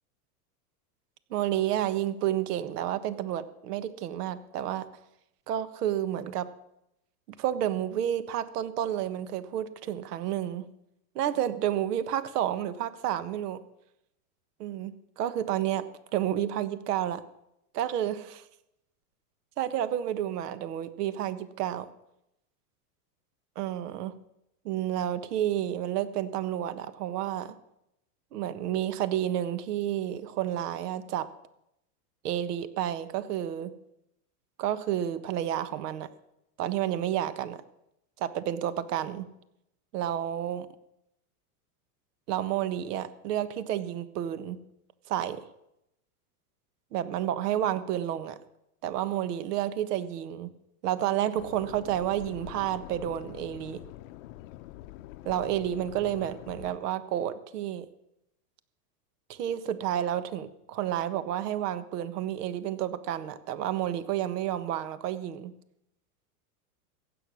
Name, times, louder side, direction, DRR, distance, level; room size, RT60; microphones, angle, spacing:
voice 1, 1.3-4.9 5.5-6.5 7.3-10.7 11.1-13.6 14.6-17.2 17.7-18.4 19.6-21.9 23.5-24.2 24.6-27.6 28.3-31.2 32.2-33.8 34.6-36.1 36.6-37.6 38.2-39.3 39.9-40.7 42.3-44.6 45.1-45.4 46.9-48.4 48.8-50.5 50.8-53.8 55.2-57.9 59.3-65.6, right 11 dB, 75° right, 13 dB, 1.4 m, -30 dB
sound 1, 51.4-56.8, left 15 dB, 55° left, 0.8 m, -45 dB
15.5 x 9.2 x 6.4 m, 0.82 s
supercardioid pair, 145°, 47 cm